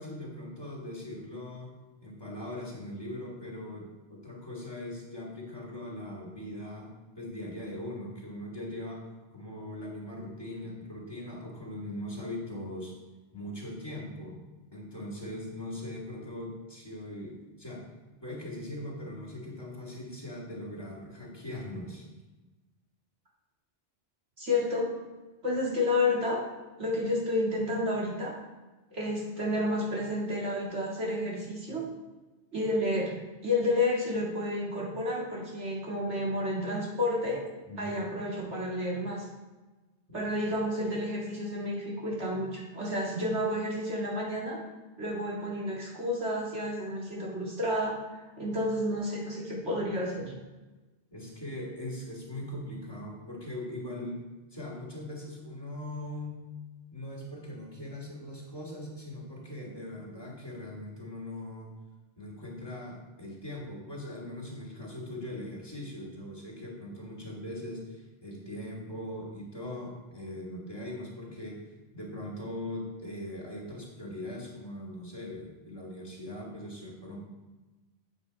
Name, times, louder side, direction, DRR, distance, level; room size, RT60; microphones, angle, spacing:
voice 1, 0.0-1.7 2.0-6.9 7.2-9.0 9.3-12.9 13.3-14.4 14.7-17.9 18.2-22.1 37.7-38.0 40.1-40.5 51.1-54.2 54.5-56.4 56.9-61.7 62.2-71.6 71.9-77.2, left 1 dB, 20° left, -4 dB, 2.1 m, -40 dB
voice 2, 24.4-24.9 25.4-26.4 26.8-28.4 28.9-31.9 32.5-33.1 33.4-37.5 37.8-39.2 40.1-44.6 45.0-48.1 48.4-50.3, left 1 dB, 85° right, -4 dB, 2.6 m, -30 dB
8.0 x 7.4 x 4.1 m, 1.2 s
omnidirectional pair, 1.1 m